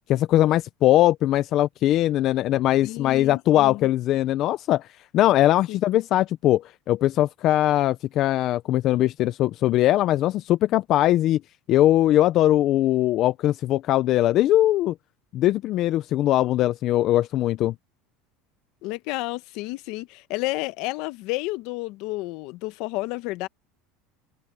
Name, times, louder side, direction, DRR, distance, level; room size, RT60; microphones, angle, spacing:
voice 1, 0.1-4.9 5.1-11.4 11.7-14.9 15.3-17.7, left 14 dB, 45° left, 0.5 m, -21 dB
voice 2, 2.8-3.9 5.7-5.8 18.8-23.5, left 21 dB, 60° left, 0.9 m, -31 dB
cardioid pair, 150°, 0 cm